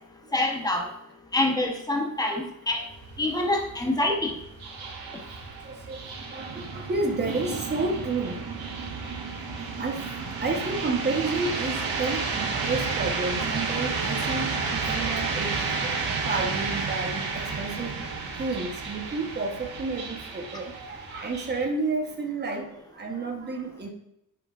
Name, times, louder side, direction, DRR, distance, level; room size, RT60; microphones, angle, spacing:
voice 1, 0.3-0.9 1.3-2.8 3.2-4.3, left 2 dB, 10° left, 1 dB, 0.9 m, -26 dB
sound 1, 2.7-21.7, right 4 dB, 85° right, 1.5 m, -32 dB
voice 2, 5.5-8.4 9.7-18.0 18.4-23.9, right 3 dB, 30° right, 2 dB, 1.1 m, -31 dB
8.9 x 6.0 x 2.5 m, 0.78 s
wide cardioid pair, 180°, 35 cm